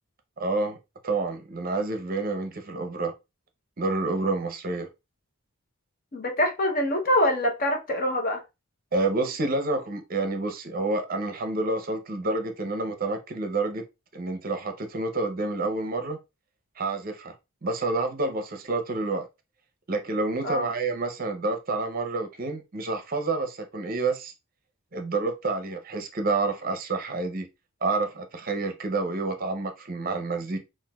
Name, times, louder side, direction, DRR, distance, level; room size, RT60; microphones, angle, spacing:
voice 1, 0.4-0.8 1.0-3.1 3.8-4.9 8.9-13.8 14.1-16.2 16.8-17.3 17.6-19.3 19.9-24.3 24.9-27.5 27.8-30.6, right 3 dB, 40° right, 0.6 m, -28 dB
voice 2, 6.1-8.4 20.4-20.7, left 1 dB, 40° left, 0.8 m, -24 dB
5.9 x 2.5 x 2.3 m
head